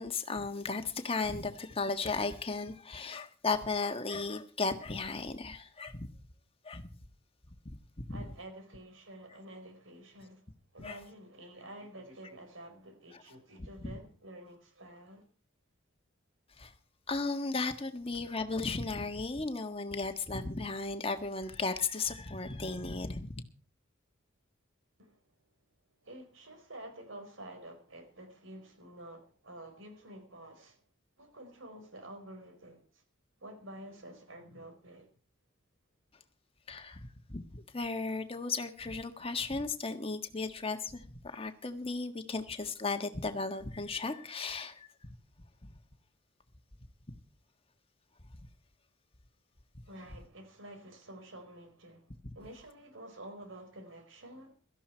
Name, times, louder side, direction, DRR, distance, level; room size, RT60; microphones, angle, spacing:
voice 1, 0.0-6.1 6.6-6.9 7.6-7.8 8.1-8.2 10.8-11.0 13.8-13.9 16.6-16.7 17.1-23.4 36.7-45.1 45.6-45.7 47.1-47.2 52.2-52.3, left 3 dB, 30° left, 1.5 m, -35 dB
voice 2, 8.1-10.4 10.7-15.2 25.0-25.2 26.0-30.8 31.2-33.0 33.4-35.1 49.9-52.1 52.3-54.5, right 1 dB, 75° right, 4.7 m, -49 dB
17.0 x 13.5 x 4.5 m
head